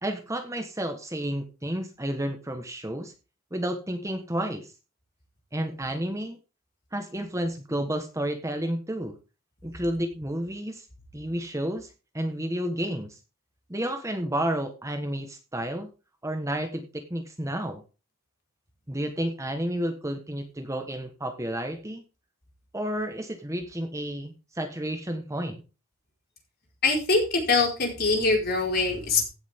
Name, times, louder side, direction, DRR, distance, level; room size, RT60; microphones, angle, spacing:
voice 1, 0.0-3.1 3.5-4.7 5.5-6.4 6.9-9.2 9.6-10.9 11.1-13.2 13.7-15.9 16.2-17.8 18.9-22.0 22.7-25.6, right 1 dB, 15° right, 5 dB, 1.3 m, -31 dB
voice 2, 26.8-29.2, left 3 dB, 50° left, 0 dB, 4.5 m, -23 dB
16.0 x 7.3 x 3.6 m, 0.31 s
head